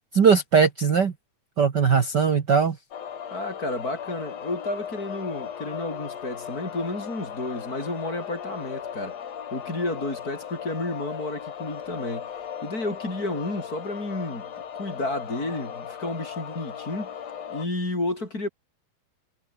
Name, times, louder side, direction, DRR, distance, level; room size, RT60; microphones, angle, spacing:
voice 1, 0.1-1.1 1.6-2.8, right 6 dB, 65° right, 1.0 m, -19 dB
sound 1, 2.9-17.7, left 8 dB, 50° left, 2.7 m, -37 dB
voice 2, 3.3-9.2 9.5-12.3 12.6-14.5 14.7-17.1 17.5-18.5, left 2 dB, 20° left, 6.4 m, -31 dB
omnidirectional pair, 4.5 m